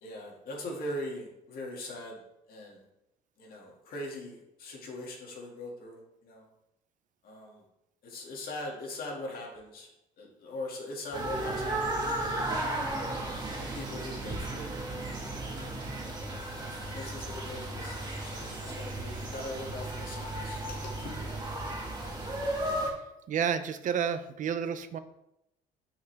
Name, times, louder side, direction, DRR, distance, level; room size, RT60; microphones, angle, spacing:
voice 1, 0.0-2.2 2.5-2.8 3.4-6.5 7.2-7.6 8.0-9.9 10.2-12.6 13.6-14.7 15.3-16.2 16.9-21.3, left 1 dB, 60° left, -1 dB, 2.3 m, -41 dB
sound 1, 11.1-22.9, right 1 dB, 25° right, 2.0 m, -35 dB
voice 2, 23.3-25.0, right 7 dB, 50° right, 11 dB, 0.6 m, -30 dB
7.6 x 5.6 x 3.5 m, 0.85 s
cardioid pair, 110°, 17 cm